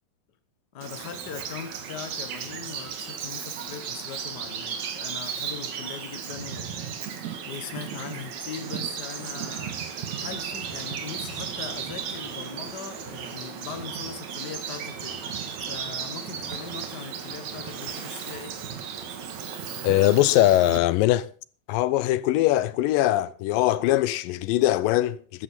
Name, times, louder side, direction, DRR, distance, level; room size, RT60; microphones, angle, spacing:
voice 1, 0.7-18.6, left 8 dB, 65° left, 1.0 m, -40 dB
Bird vocalization bird call bird song, 0.8-20.8, right 7 dB, 60° right, 2.7 m, -35 dB
voice 2, 19.8-21.3 21.7-25.4, left 15 dB, 85° left, 2.4 m, -21 dB
13.5 x 13.5 x 4.3 m
omnidirectional pair, 3.9 m